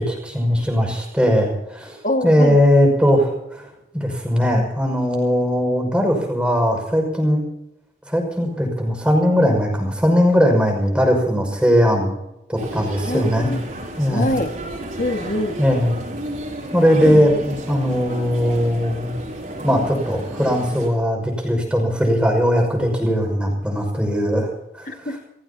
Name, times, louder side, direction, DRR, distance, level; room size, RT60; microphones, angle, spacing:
voice 1, 0.0-2.0 2.2-3.7 3.9-7.4 8.1-12.2 12.5-13.5 14.0-14.3 15.6-15.9 16.7-19.1 19.6-24.9, equal, 5° right, 1 dB, 5.8 m, -19 dB
voice 2, 2.0-2.6 13.1-13.6 14.1-14.5 15.0-15.6 17.0-17.2 24.9-25.2, left 1 dB, 45° left, 5 dB, 1.9 m, -24 dB
sound 1, 12.6-20.9, right 1 dB, 45° right, 5.9 m, -32 dB
29.0 x 16.5 x 2.9 m, 0.89 s
head